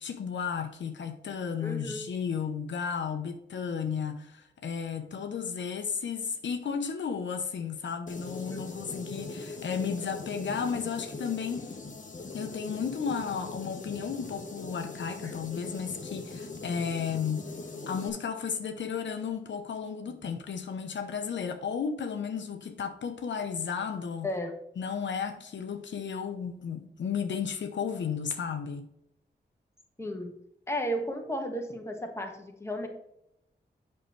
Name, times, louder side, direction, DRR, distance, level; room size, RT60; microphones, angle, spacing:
voice 1, 0.0-11.8 12.3-17.6 17.9-24.3 24.8-28.9, left 6 dB, 80° left, 0.8 m, -33 dB
voice 2, 1.6-2.0 8.5-8.6 15.2-15.3 20.1-20.3 24.2-24.5 30.0-30.3 30.7-32.9, equal, 15° left, 1.5 m, -34 dB
sound 1, 8.1-18.1, left 3 dB, 45° left, 1.2 m, -41 dB
7.9 x 5.7 x 3.2 m
wide cardioid pair, 100°, 19 cm